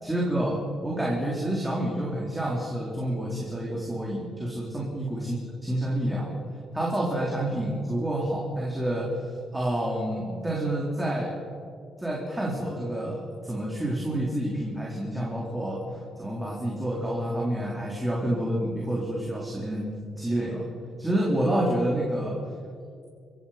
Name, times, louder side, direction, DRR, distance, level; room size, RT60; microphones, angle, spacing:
voice 1, 0.0-6.4 6.7-9.1 9.5-11.4 12.0-20.7 21.0-22.4, right 1 dB, 10° right, -3 dB, 4.1 m, -28 dB
29.0 x 15.5 x 6.0 m, 2.3 s
cardioid pair, 90°, 0 cm